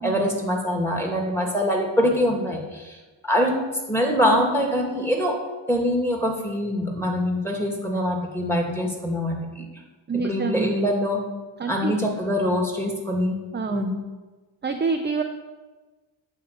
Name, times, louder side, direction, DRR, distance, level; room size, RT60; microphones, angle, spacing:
voice 1, 0.0-3.0 3.2-3.5 3.9-5.4 5.7-9.7 10.1-11.2 11.7-13.4 13.7-13.9, equal, 5° left, 0 dB, 2.1 m, -24 dB
voice 2, 10.1-10.7 11.6-11.9 13.5-13.8 14.6-15.2, right 4 dB, 25° right, 5 dB, 0.6 m, -26 dB
8.5 x 3.6 x 6.6 m, 1.2 s
cardioid pair, 50°, 45 cm